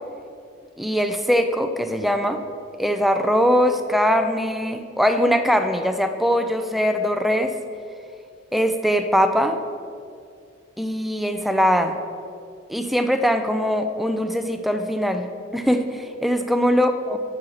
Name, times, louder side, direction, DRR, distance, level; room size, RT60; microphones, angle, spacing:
voice 1, 0.8-2.4 2.8-7.5 8.5-9.6 10.8-11.9 12.7-17.2, equal, ahead, 7 dB, 0.5 m, -21 dB
11.0 x 5.0 x 7.0 m, 2.4 s
head